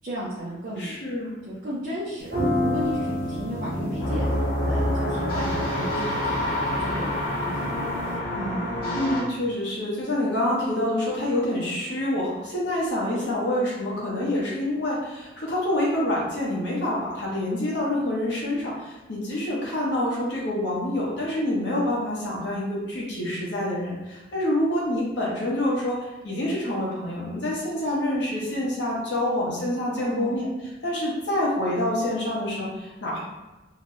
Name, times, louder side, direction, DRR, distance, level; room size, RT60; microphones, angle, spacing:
voice 1, 0.0-0.9 1.4-4.3 4.7-7.9 8.3-8.7 13.1-13.4 29.9-30.4, equal, 50° right, -6 dB, 0.6 m, -34 dB
voice 2, 0.8-1.3 8.9-26.0 26.2-30.5 30.8-33.2, left 1 dB, 65° left, -5 dB, 1.0 m, -27 dB
sound 1, 2.2-8.1, equal, 65° right, 1.0 m, -30 dB
sound 2, 4.0-9.2, left 1 dB, 50° left, 1.3 m, -27 dB
2.8 x 2.2 x 3.0 m, 1.1 s
head